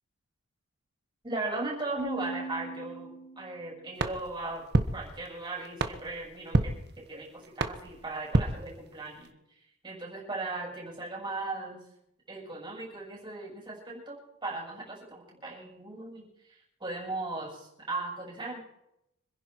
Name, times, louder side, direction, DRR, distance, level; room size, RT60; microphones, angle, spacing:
voice 1, 1.2-4.6 4.9-6.7 7.1-9.3 9.8-11.8 12.3-18.6, right 2 dB, 20° right, -2 dB, 6.9 m, -37 dB
Keyboard (musical), 2.0-3.8, right 2 dB, 50° left, 2.5 m, -40 dB
sound 1, 4.0-9.3, right 2 dB, 50° right, 1.3 m, -32 dB
26.0 x 11.0 x 4.7 m, 0.80 s
head